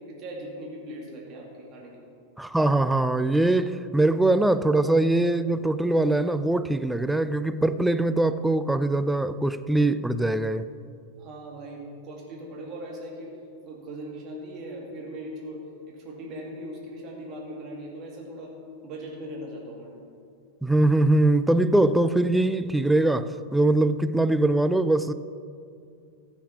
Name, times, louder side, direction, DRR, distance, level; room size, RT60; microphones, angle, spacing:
voice 1, 0.1-2.0 11.1-13.3 13.6-18.5 18.8-19.9, right 1 dB, 35° right, 2.4 m, -39 dB
voice 2, 2.4-10.7 20.6-25.1, right 2 dB, 5° right, 0.4 m, -22 dB
14.0 x 7.3 x 4.9 m
figure-of-eight pair, 90°, 0 cm